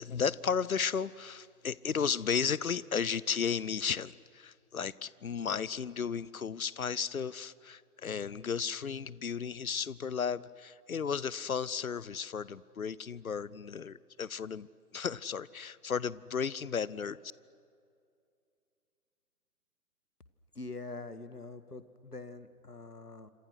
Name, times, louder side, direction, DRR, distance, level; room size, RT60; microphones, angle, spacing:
voice 1, 0.0-14.7 14.9-17.2, left 6 dB, 65° left, 21 dB, 0.8 m, -34 dB
voice 2, 20.6-23.3, left 3 dB, 85° left, 12 dB, 1.8 m, -44 dB
28.0 x 27.0 x 6.4 m, 2.4 s
figure-of-eight pair, 135°, 45 cm